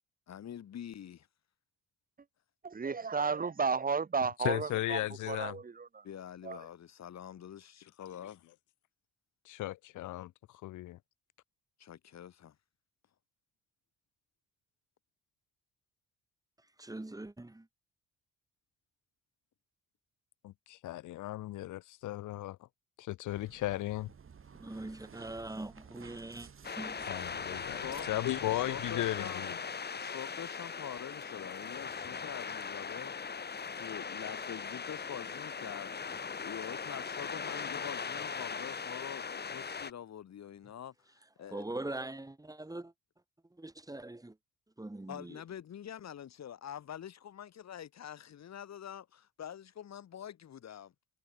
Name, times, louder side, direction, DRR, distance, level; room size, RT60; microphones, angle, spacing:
voice 1, 0.3-1.3 6.0-8.4 11.8-12.6 27.5-28.1 28.7-33.3 33.7-36.1 36.4-40.9 41.4-41.6 45.1-50.9, left 9 dB, 60° left, 4.2 m, -45 dB
voice 2, 2.6-5.0 5.3-6.0 6.4-6.6, right 5 dB, 30° right, 1.5 m, -33 dB
voice 3, 4.4-5.6 9.4-10.3 10.6-11.0 20.4-22.6 23.0-24.1 27.1-29.6, left 16 dB, 80° left, 1.1 m, -36 dB
voice 4, 16.8-17.7 24.6-26.5 26.8-27.0 41.5-42.9 43.5-44.4 44.8-45.4, right 2 dB, 10° right, 4.0 m, -42 dB
sound 1, 23.3-29.2, right 6 dB, 45° right, 7.4 m, -55 dB
sound 2, 26.6-39.9, left 5 dB, 35° left, 2.0 m, -39 dB
cardioid pair, 90°, 30 cm